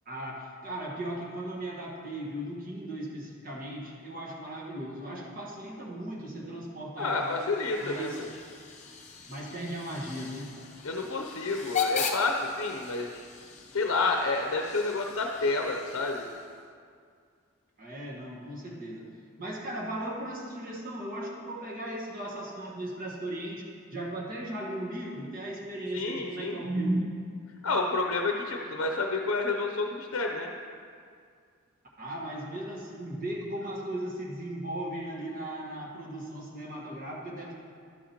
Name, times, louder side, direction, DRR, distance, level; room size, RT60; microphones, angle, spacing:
voice 1, 0.0-7.5 7.8-8.2 9.3-10.6 17.8-19.1 19.4-27.1 32.0-37.5, right 1 dB, 40° right, -3 dB, 1.4 m, -36 dB
voice 2, 7.0-8.3 10.8-13.2 13.7-16.3 25.9-26.6 27.6-30.5, left 3 dB, 80° left, 2 dB, 0.6 m, -29 dB
Hiss / Train / Alarm, 7.0-16.7, left 5 dB, 35° left, 0.7 m, -38 dB
12.0 x 8.5 x 2.9 m, 2.2 s
head